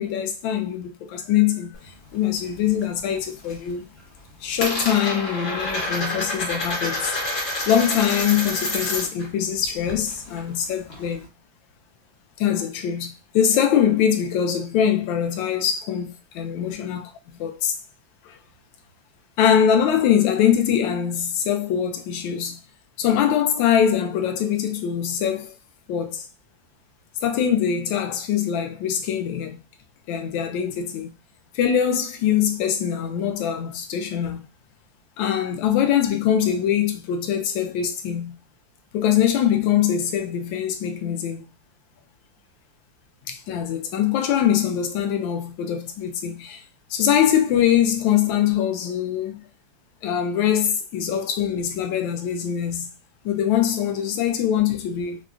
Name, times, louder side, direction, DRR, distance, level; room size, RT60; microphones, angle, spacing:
voice 1, 0.0-1.7 2.1-3.9 4.4-7.1 7.7-11.3 12.4-17.7 18.2-18.4 19.4-22.6 23.0-25.5 25.9-26.3 27.2-29.6 30.1-31.1 31.5-34.4 35.2-38.4 38.9-41.5 43.3-46.6 46.9-49.4 50.0-52.9 53.2-55.2, left 9 dB, 80° left, 1.3 m, -23 dB
Coin (dropping), 1.7-2.9 3.2-3.7 4.0-9.3 9.5-11.2, left 1 dB, 45° left, 1.0 m, -29 dB
4.4 x 2.1 x 2.4 m
omnidirectional pair, 2.1 m